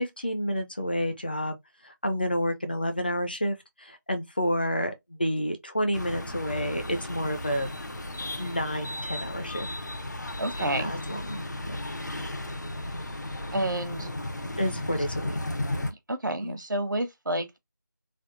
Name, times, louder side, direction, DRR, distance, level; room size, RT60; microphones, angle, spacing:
voice 1, 0.0-1.6 1.8-7.7 8.4-9.7 10.6-11.8 14.6-15.4 16.4-16.6, equal, 30° left, 0.5 m, -30 dB
sound 1, 5.9-15.9, left 1 dB, 65° left, 0.9 m, -35 dB
voice 2, 10.4-10.9 12.9-13.1 13.5-14.1 14.9-15.0 15.8-17.6, right 1 dB, 75° right, 1.0 m, -30 dB
3.4 x 2.2 x 2.5 m
figure-of-eight pair, 170°, 11 cm